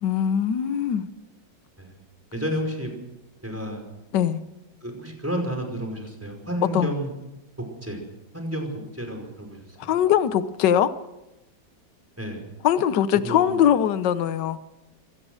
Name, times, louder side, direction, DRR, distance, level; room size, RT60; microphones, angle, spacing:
voice 1, 0.0-1.1 4.1-4.4 6.7-6.9 9.8-10.9 12.6-14.6, left 9 dB, 65° left, 1.5 m, -21 dB
voice 2, 2.3-2.9 3.4-3.8 4.8-7.1 7.8-8.0 8.3-10.0 12.2-12.4 13.2-13.6, equal, 5° right, 5.2 m, -31 dB
25.0 x 17.5 x 6.4 m
omnidirectional pair, 2.1 m